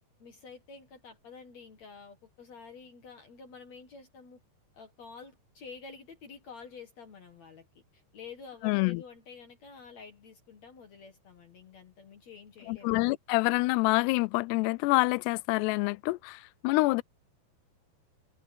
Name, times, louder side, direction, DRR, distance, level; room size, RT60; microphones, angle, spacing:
voice 1, 0.2-4.4 4.7-12.9, left 5 dB, 50° left, 2.2 m, -49 dB
voice 2, 8.6-9.0 12.7-17.0, left 23 dB, 80° left, 2.5 m, -27 dB
omnidirectional pair, 5.2 m